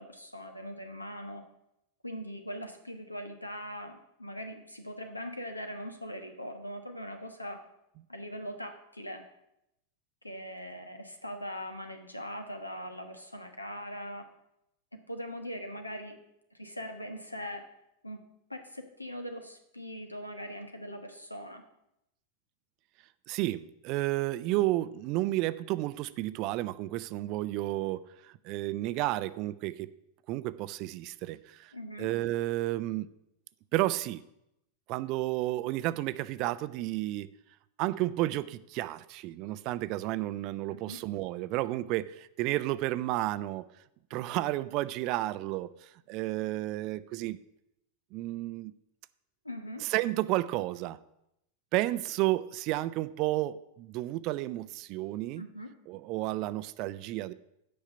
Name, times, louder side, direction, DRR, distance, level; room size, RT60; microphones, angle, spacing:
voice 1, 0.0-1.4 2.0-7.6 8.1-9.2 10.2-14.3 14.9-16.1 16.5-17.7 18.0-18.2 18.5-21.6 31.7-32.1 40.7-41.0 49.4-49.8 55.4-55.7, equal, 85° left, 6 dB, 1.2 m, -41 dB
voice 2, 23.3-29.9 30.3-31.7 32.0-33.1 33.7-34.2 34.9-37.3 37.8-43.6 44.1-47.4 48.1-48.7 49.8-51.0 51.7-55.4 55.9-57.3, right 16 dB, 40° right, 16 dB, 0.4 m, -32 dB
8.5 x 5.7 x 7.9 m, 0.82 s
figure-of-eight pair, 90°, 0 cm